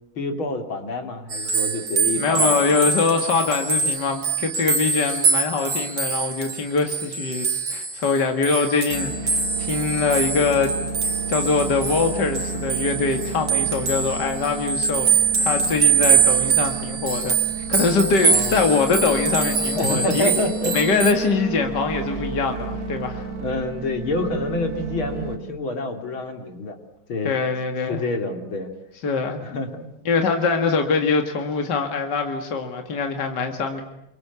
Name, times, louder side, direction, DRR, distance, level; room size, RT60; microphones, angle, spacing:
voice 1, 0.2-2.6 18.2-18.7 19.8-20.8 23.3-26.8 27.1-27.4 27.9-28.7 29.4-29.9, left 2 dB, 75° left, 5 dB, 3.7 m, -27 dB
sound 1, 1.3-21.1, right 5 dB, 85° right, 3.7 m, -24 dB
voice 2, 2.2-10.7 11.0-17.4 17.7-20.3 20.7-23.3 27.2-28.0 29.0-29.4 30.1-33.8, left 4 dB, 55° left, 5 dB, 2.6 m, -23 dB
sound 2, 8.9-25.4, right 3 dB, 40° right, 2.6 m, -31 dB
28.5 x 23.5 x 8.3 m, 0.80 s
omnidirectional pair, 2.2 m